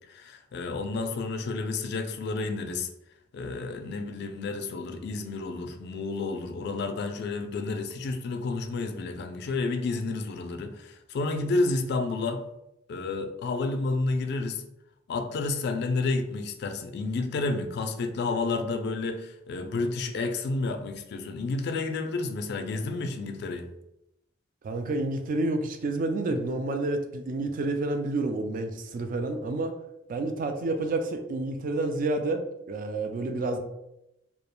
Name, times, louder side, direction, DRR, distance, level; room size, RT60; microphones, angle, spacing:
voice 1, 0.1-2.9 3.3-12.4 12.9-14.6 15.1-23.7, left 3 dB, 60° left, 6 dB, 0.3 m, -30 dB
voice 2, 24.6-29.7 30.1-33.6, right 2 dB, 45° right, 6 dB, 0.3 m, -29 dB
2.3 x 2.1 x 2.9 m, 0.86 s
head